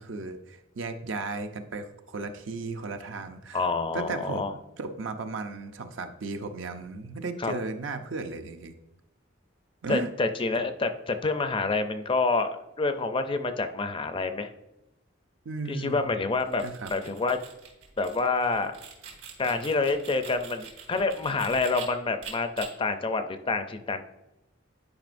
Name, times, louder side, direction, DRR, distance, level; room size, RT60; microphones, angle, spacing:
voice 1, 0.0-3.7 3.9-4.4 4.8-8.7 9.8-10.1 15.4-16.1 16.6-16.9, right 3 dB, 70° right, 7 dB, 0.6 m, -35 dB
voice 2, 3.5-4.5 7.4-7.5 9.9-14.5 15.7-16.6 16.9-17.4 18.0-18.7 19.4-24.0, left 3 dB, 25° left, 8 dB, 0.4 m, -27 dB
sound 1, 16.3-21.8 22.2-22.7, right 7 dB, 85° right, 2.7 m, -44 dB
10.5 x 5.0 x 2.6 m, 0.95 s
head